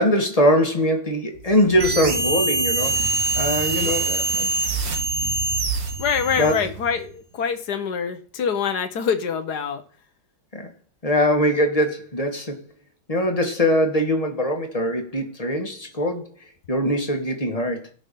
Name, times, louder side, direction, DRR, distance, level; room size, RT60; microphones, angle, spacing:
voice 1, 0.0-3.0 3.3-4.5 6.4-6.6 10.5-10.7 11.0-12.6 13.1-16.3 16.7-17.8, equal, 20° left, 1.5 m, -22 dB
sound 1, 1.3-7.3, right 6 dB, 30° right, 2.1 m, -36 dB
sound 2, 1.8-6.7, right 3 dB, 85° right, 2.5 m, -24 dB
voice 2, 6.0-9.8, left 6 dB, 55° left, 1.4 m, -25 dB
16.5 x 5.9 x 5.4 m
omnidirectional pair, 2.2 m